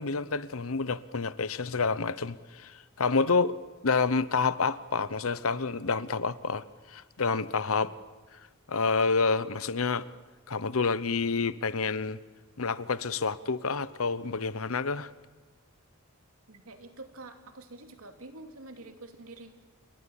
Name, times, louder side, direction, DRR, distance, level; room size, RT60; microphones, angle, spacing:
voice 1, 0.0-3.5 3.8-7.9 8.7-10.1 10.5-12.2 12.6-15.1, left 4 dB, 75° left, 0.9 m, -28 dB
voice 2, 16.5-19.5, right 2 dB, 85° right, 2.8 m, -47 dB
27.5 x 22.5 x 7.3 m
head